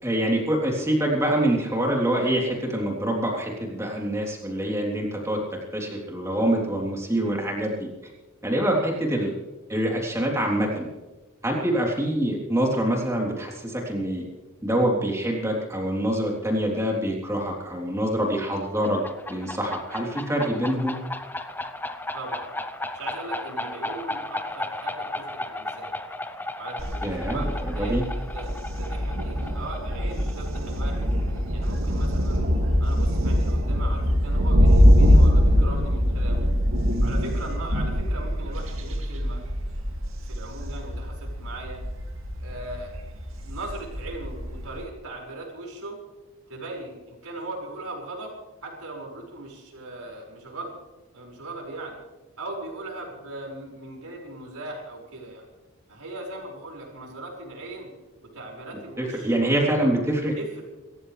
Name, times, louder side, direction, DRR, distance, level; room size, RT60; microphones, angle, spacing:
voice 1, 0.0-5.4 5.7-7.9 8.4-9.3 9.7-10.9 11.4-14.2 14.6-19.0 19.3-20.9 27.0-28.0 59.0-60.3, right 1 dB, 15° right, -1 dB, 3.5 m, -25 dB
sound 1, 18.6-32.0, left 2 dB, 10° left, 0.6 m, -35 dB
voice 2, 22.1-22.5 22.9-25.9 26.6-31.0 31.5-32.5 32.8-36.4 37.0-39.4 40.3-41.8 42.4-42.9 43.4-46.0 46.5-48.3 48.6-50.8 51.1-52.0 52.4-55.5 55.9-57.9 58.2-59.3 60.2-60.6, right 2 dB, 90° right, -1 dB, 5.6 m, -39 dB
Thunder, 26.8-44.8, equal, 65° right, 2.4 m, -23 dB
27.0 x 14.5 x 3.4 m, 1.1 s
head